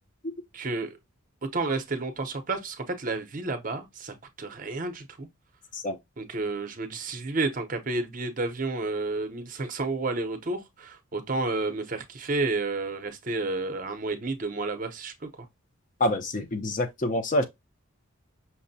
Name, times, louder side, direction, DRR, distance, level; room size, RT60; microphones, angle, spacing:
voice 1, 0.5-1.0 1.5-5.3 6.2-15.3, right 3 dB, 40° right, 0.6 m, -31 dB
voice 2, 16.0-17.4, left 1 dB, 35° left, 0.6 m, -26 dB
5.8 x 2.1 x 2.6 m
head